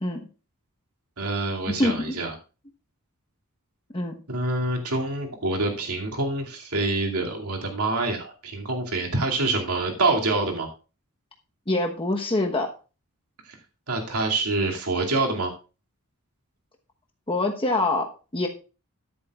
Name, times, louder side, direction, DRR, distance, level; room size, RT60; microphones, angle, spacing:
voice 1, 1.2-2.3 4.3-10.7 13.5-13.6 13.9-15.5, right 2 dB, 85° right, 1 dB, 2.5 m, -26 dB
voice 2, 11.7-12.7 17.3-18.5, left 2 dB, 25° left, 2 dB, 1.1 m, -25 dB
13.5 x 10.5 x 2.4 m, 0.33 s
head